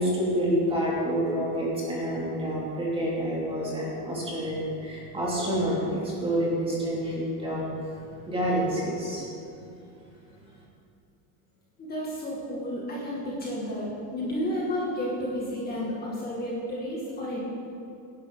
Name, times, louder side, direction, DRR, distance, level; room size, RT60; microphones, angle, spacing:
voice 1, 0.0-7.7 8.3-9.2, equal, 10° right, -6 dB, 2.7 m, -28 dB
voice 2, 11.8-17.4, equal, 20° left, -5 dB, 2.2 m, -31 dB
18.0 x 10.5 x 3.9 m, 2.8 s
cardioid pair, 170°, 45 cm